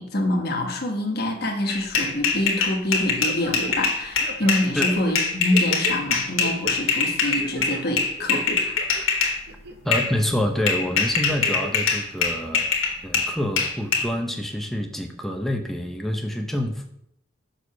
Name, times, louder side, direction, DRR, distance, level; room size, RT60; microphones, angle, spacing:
voice 1, 0.0-8.7, left 1 dB, 50° left, 2 dB, 1.3 m, -26 dB
sound 1, 1.7-9.4 9.9-10.1 10.7-14.0, left 5 dB, 75° left, 1.5 m, -23 dB
sound 2, 3.2-3.9 4.2-6.0 6.4-6.7 7.2-7.8 8.2-9.0 9.5-10.1 10.5-10.7 11.3-11.9 12.2-12.3, right 3 dB, 50° right, 0.9 m, -37 dB
voice 2, 9.8-12.8 13.0-16.9, equal, ahead, 3 dB, 0.7 m, -27 dB
6.4 x 4.8 x 5.7 m, 0.76 s
head